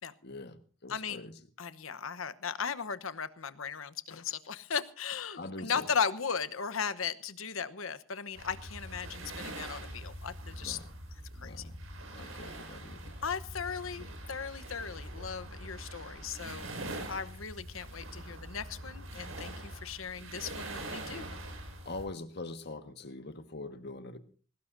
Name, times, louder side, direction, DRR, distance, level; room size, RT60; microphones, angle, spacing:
voice 1, 0.2-1.4 5.4-5.9 10.6-10.9 11.3-13.2 21.8-24.2, left 2 dB, 55° left, 8 dB, 1.5 m, -44 dB
voice 2, 0.9-1.2 1.6-10.8 11.4-11.6 13.2-16.7 17.1-21.3, left 6 dB, 80° left, 13 dB, 1.0 m, -37 dB
sound 1, 8.3-22.0, right 1 dB, 80° right, 5.7 m, -43 dB
21.0 x 18.5 x 2.6 m, 0.40 s
head